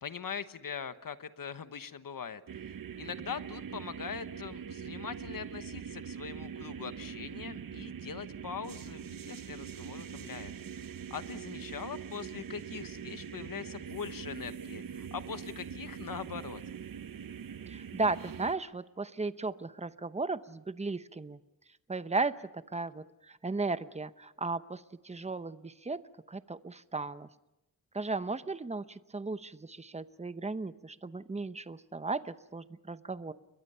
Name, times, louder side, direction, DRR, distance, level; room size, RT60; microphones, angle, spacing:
voice 1, 0.0-10.5 11.1-16.6, left 6 dB, 65° left, 11 dB, 1.1 m, -42 dB
sound 1, 2.5-18.5, right 7 dB, 65° right, 0.8 m, -43 dB
voice 2, 17.7-21.4 21.9-26.0 26.3-27.3 27.9-33.3, right 3 dB, 20° right, 13 dB, 0.8 m, -35 dB
29.5 x 22.5 x 5.6 m, 0.94 s
wide cardioid pair, 120°, 36 cm